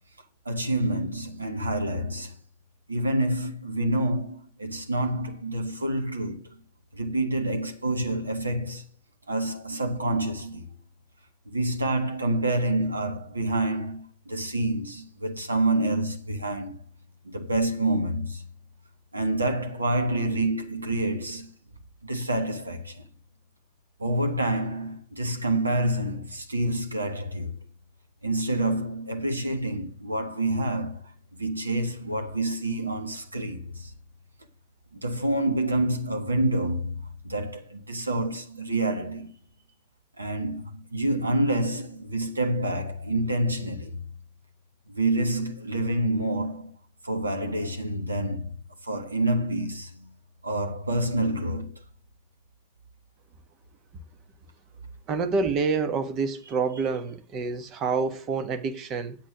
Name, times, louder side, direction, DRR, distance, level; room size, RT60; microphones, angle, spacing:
voice 1, 0.4-2.3 2.9-6.6 6.9-8.8 9.3-10.7 11.5-16.8 17.2-18.4 19.1-21.5 22.0-23.0 24.0-27.6 28.2-33.9 34.9-37.0 37.2-39.3 40.2-44.0 44.9-46.7 47.0-48.6 48.8-50.1 50.4-51.8, right 1 dB, 80° right, 1.2 m, -27 dB
voice 2, 55.1-59.2, right 4 dB, 35° right, 1.4 m, -27 dB
9.0 x 7.7 x 6.0 m
figure-of-eight pair, 90°, 0 cm